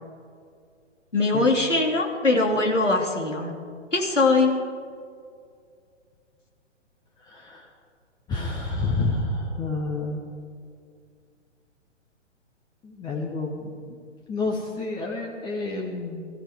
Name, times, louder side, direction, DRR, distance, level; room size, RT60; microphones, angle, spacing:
voice 1, 1.1-3.5 3.9-4.6, left 3 dB, 85° left, 1 dB, 2.7 m, -21 dB
voice 2, 7.2-7.7 8.3-10.2 12.8-14.0 14.3-16.2, left 3 dB, 10° left, -1 dB, 1.0 m, -29 dB
22.5 x 14.5 x 3.6 m, 2.2 s
figure-of-eight pair, 125°, 36 cm